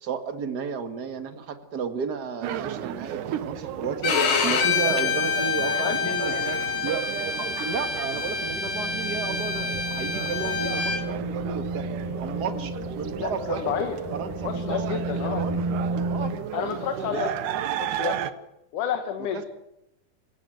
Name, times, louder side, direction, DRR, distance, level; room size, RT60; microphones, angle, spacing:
voice 1, 0.0-7.0 7.4-11.9 12.2-13.8 14.1-15.6 16.1-16.3 17.1-17.2 19.2-19.4, right 5 dB, 40° right, 8 dB, 1.8 m, -33 dB
sound 1, 2.4-18.3, right 10 dB, 80° right, 2.6 m, -34 dB
Bowed string instrument, 4.0-11.0, left 5 dB, 90° left, 4.1 m, -27 dB
sound 2, 5.6-16.3, right 2 dB, 5° right, 6.6 m, -34 dB
voice 2, 5.8-6.3 13.2-14.0 14.4-15.4 16.5-17.3 17.8-18.2 18.7-19.5, left 8 dB, 75° left, 6 dB, 2.9 m, -30 dB
27.5 x 16.0 x 7.9 m, 0.89 s
omnidirectional pair, 3.7 m